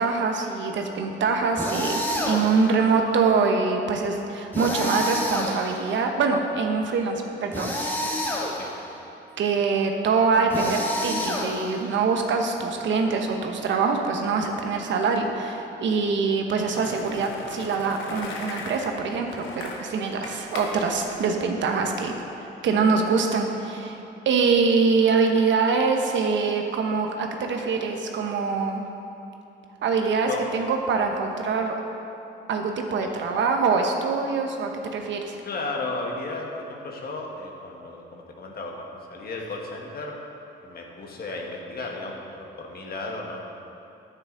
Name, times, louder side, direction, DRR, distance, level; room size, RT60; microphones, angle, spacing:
voice 1, 0.0-8.0 9.4-22.1 22.6-24.0 24.3-28.8 29.8-31.7 32.5-35.3, right 4 dB, 70° right, 3 dB, 1.0 m, -24 dB
sound 1, 1.6-2.7 4.5-6.0 7.5-8.8 10.5-11.9, left 1 dB, 10° left, 1.7 m, -29 dB
Skateboard, 16.7-22.1, left 3 dB, 85° left, 1.2 m, -38 dB
voice 2, 35.4-40.1 40.6-43.5, left 2 dB, 50° left, 0 dB, 1.6 m, -34 dB
9.7 x 8.9 x 3.9 m, 2.8 s
cardioid pair, 90°, 20 cm